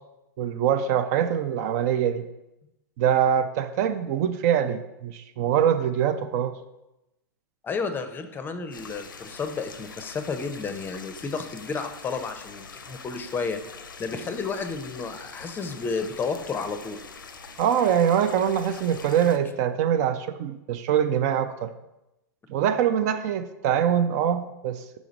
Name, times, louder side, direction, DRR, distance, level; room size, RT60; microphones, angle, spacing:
voice 1, 0.4-2.2 3.0-6.5 17.6-21.7 22.5-25.0, right 9 dB, 50° right, 11 dB, 0.4 m, -24 dB
voice 2, 7.6-13.6 14.0-17.0, left 4 dB, 20° left, 8 dB, 0.6 m, -31 dB
sound 1, 8.7-19.4, left 5 dB, 90° left, 0.6 m, -44 dB
5.0 x 5.0 x 3.9 m, 0.92 s
hypercardioid pair, 105°, 11 cm